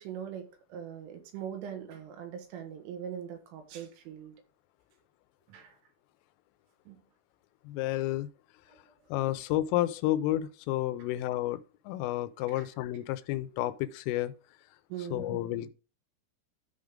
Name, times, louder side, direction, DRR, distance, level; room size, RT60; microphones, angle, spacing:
voice 1, 0.0-4.3 5.5-5.8 6.9-7.0 8.7-8.8 12.5-12.6 14.9-15.4, right 9 dB, 80° right, 4.0 m, -41 dB
voice 2, 7.6-8.3 9.1-14.3 15.1-15.7, left 14 dB, 85° left, 3.2 m, -31 dB
13.0 x 5.1 x 3.7 m
omnidirectional pair, 5.9 m